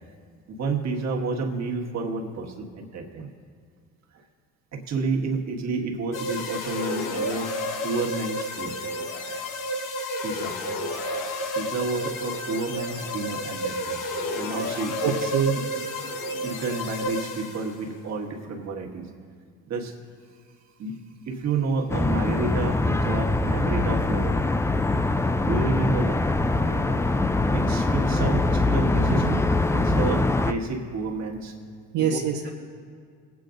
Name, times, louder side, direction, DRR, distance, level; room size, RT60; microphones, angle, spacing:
voice 1, 0.5-3.3 4.7-7.5 7.8-8.7 10.2-10.6 11.5-14.0 14.4-15.1 16.0-16.1 16.4-19.1 19.7-19.9 20.8-21.0 21.3-24.4 25.4-27.0 27.5-29.2 29.7-31.5 32.0-32.2, right 3 dB, 50° right, 0 dB, 1.7 m, -30 dB
sound 1, 6.1-17.9, left 1 dB, 65° left, 1.1 m, -31 dB
voice 2, 15.0-15.6 29.1-29.4 31.9-32.5, right 7 dB, 70° right, -2 dB, 1.0 m, -25 dB
sound 2, 21.9-30.5, left 2 dB, 10° left, 0.4 m, -23 dB
23.0 x 8.5 x 2.6 m, 2.1 s
supercardioid pair, 70°, 35 cm